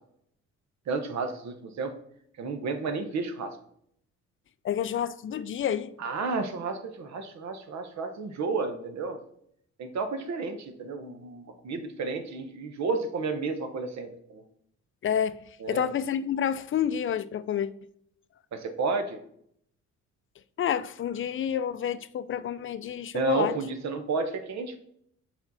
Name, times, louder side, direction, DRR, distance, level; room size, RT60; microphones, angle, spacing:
voice 1, 0.9-1.9 2.4-3.6 6.0-9.2 9.8-14.4 15.6-15.9 18.5-19.2 23.1-24.8, right 4 dB, 65° right, 1.0 m, -31 dB
voice 2, 4.6-5.9 15.0-15.4 15.7-17.7 20.6-23.5, left 9 dB, 45° left, 0.4 m, -29 dB
7.0 x 4.4 x 4.0 m
cardioid pair, 90°, 30 cm